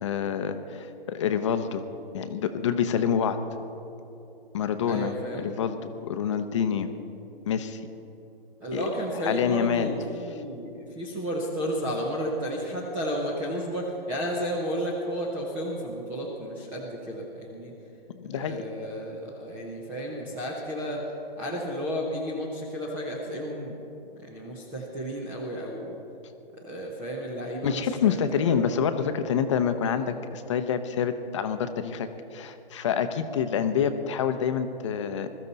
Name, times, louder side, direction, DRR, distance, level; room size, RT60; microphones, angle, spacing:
voice 1, 0.0-1.8 2.1-3.4 4.5-6.9 7.5-7.8 8.7-8.9 9.1-9.9 18.1-18.6 27.6-35.3, left 7 dB, 30° left, 9 dB, 0.7 m, -27 dB
voice 2, 4.9-5.5 8.6-17.7 18.3-21.0 21.4-23.7 24.2-26.0 26.6-28.2 28.4-28.6, equal, 5° right, -3 dB, 0.4 m, -32 dB
21.0 x 13.5 x 4.0 m, 2.9 s
hypercardioid pair, 155°, 30 cm